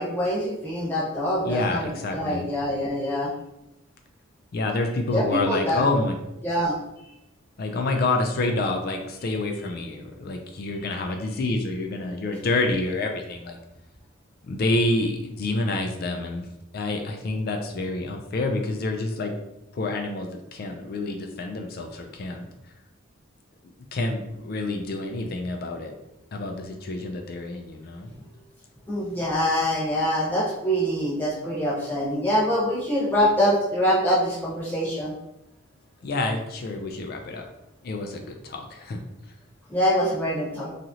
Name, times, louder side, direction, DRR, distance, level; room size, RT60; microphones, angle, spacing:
voice 1, 0.0-3.3 5.1-5.8 6.4-6.7 28.9-35.1 39.7-40.7, equal, 10° left, -9 dB, 1.0 m, -24 dB
voice 2, 1.4-2.4 4.5-6.2 7.6-13.6 14.4-16.5 16.7-19.3 19.7-22.5 23.9-25.9 26.3-28.1 36.0-37.5 37.8-39.0, left 2 dB, 45° left, 4 dB, 0.3 m, -28 dB
3.0 x 2.4 x 2.7 m, 0.89 s
head